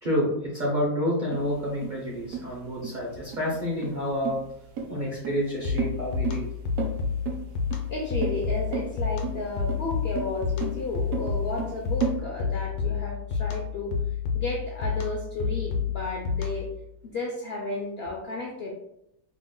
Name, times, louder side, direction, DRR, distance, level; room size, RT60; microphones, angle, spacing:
voice 1, 0.0-4.4 4.9-6.5, equal, 50° right, -5 dB, 0.6 m, -29 dB
sound 1, 1.3-12.2, right 5 dB, 70° right, 0.9 m, -33 dB
sound 2, 5.6-16.8, left 6 dB, 85° left, 1.1 m, -30 dB
voice 2, 7.9-14.0 14.3-16.7 17.0-18.7, left 2 dB, 70° left, -1 dB, 0.6 m, -33 dB
2.9 x 2.1 x 3.6 m, 0.78 s
omnidirectional pair, 1.6 m